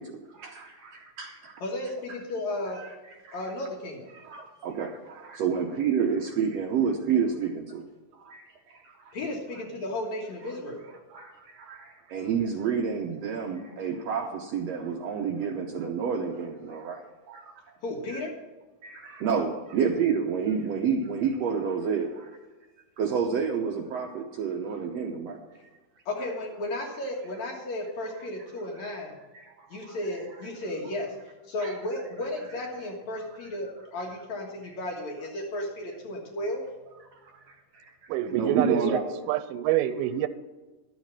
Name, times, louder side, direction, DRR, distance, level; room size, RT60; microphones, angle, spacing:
voice 1, 0.0-1.6 2.7-3.5 4.1-7.8 8.1-9.1 10.5-10.6 11.1-17.5 18.1-18.2 18.8-22.4 23.0-25.5 29.3-30.0 31.6-31.8 33.1-33.3 37.1-37.9 38.3-39.1, right 6 dB, 75° right, 3 dB, 1.5 m, -30 dB
voice 2, 1.6-2.8 3.3-4.1 9.1-10.8 17.8-18.3 26.1-29.1 29.7-31.1 31.5-36.6, left 1 dB, 60° left, 0 dB, 2.7 m, -34 dB
voice 3, 38.1-38.8 39.3-40.3, right 13 dB, 90° right, 13 dB, 2.3 m, -26 dB
12.0 x 7.4 x 6.0 m, 1.2 s
omnidirectional pair, 3.9 m